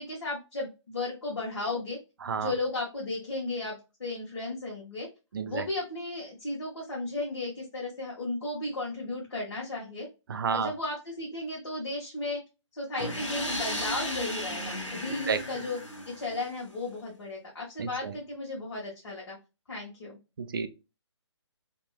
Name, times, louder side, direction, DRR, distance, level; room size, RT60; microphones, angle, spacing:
voice 1, 0.0-2.0 2.4-5.1 5.4-10.1 10.5-12.4 12.7-15.8 16.1-19.4 19.7-20.2, left 2 dB, 60° left, 1.1 m, -35 dB
voice 2, 2.2-2.5 5.3-5.6 10.3-10.7 15.3-15.4 17.8-18.1 20.4-20.7, right 6 dB, 45° right, 0.4 m, -30 dB
sound 1, 13.0-16.7, equal, 85° left, 0.9 m, -35 dB
2.8 x 2.2 x 2.2 m
figure-of-eight pair, 140°, 16 cm